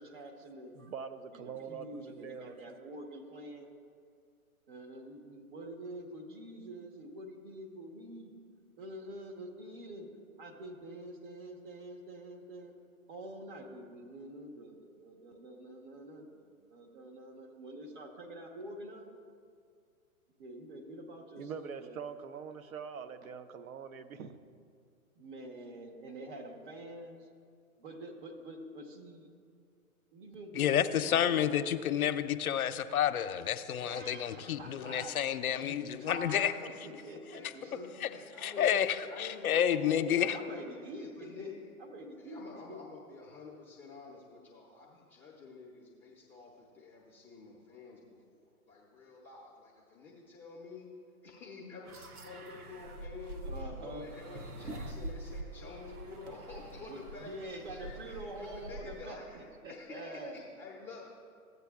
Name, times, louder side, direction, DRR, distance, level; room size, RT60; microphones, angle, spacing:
voice 1, 0.0-0.7 1.3-3.7 4.7-8.3 8.8-10.1 10.4-12.7 13.1-19.1 20.4-22.0 25.2-27.3 27.8-29.3 30.1-30.8 31.0-31.6 33.8-35.2 35.6-38.2 40.0-41.5 41.8-42.4 42.7-42.8 53.4-54.1 56.8-60.4, right 1 dB, 35° right, 2 dB, 1.2 m, -46 dB
voice 2, 0.7-2.8 21.4-24.4, right 6 dB, 70° right, 10 dB, 0.7 m, -44 dB
voice 3, 30.5-36.5 38.4-40.4, left 9 dB, 75° left, 10 dB, 0.6 m, -30 dB
voice 4, 35.4-35.7 36.0-36.1 37.3-41.7 42.2-50.9 51.2-61.1, left 4 dB, 5° left, -5 dB, 0.6 m, -50 dB
sound 1, 51.9-59.1, right 1 dB, 85° right, 1.0 m, -45 dB
14.5 x 8.0 x 2.4 m, 2.2 s
hypercardioid pair, 135°, 44 cm